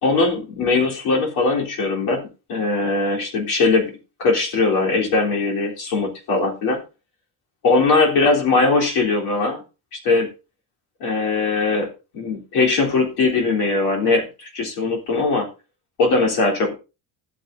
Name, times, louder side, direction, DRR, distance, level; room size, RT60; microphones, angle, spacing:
voice 1, 0.0-3.9 4.2-6.8 7.6-9.6 9.9-10.3 11.0-15.5 16.0-16.7, left 3 dB, 60° left, 0 dB, 3.6 m, -20 dB
15.0 x 9.1 x 2.7 m, 0.30 s
cardioid pair, 175°, 43 cm